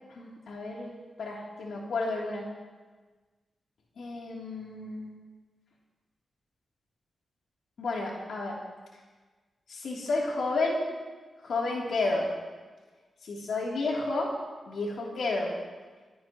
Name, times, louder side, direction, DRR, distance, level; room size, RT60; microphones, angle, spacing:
voice 1, 0.1-2.5 4.0-5.1 7.8-8.6 9.7-10.9 11.4-12.3 13.2-14.3 14.7-15.5, left 2 dB, 80° left, -3 dB, 3.1 m, -31 dB
25.5 x 16.5 x 3.1 m, 1.3 s
wide cardioid pair, 95°, 0 cm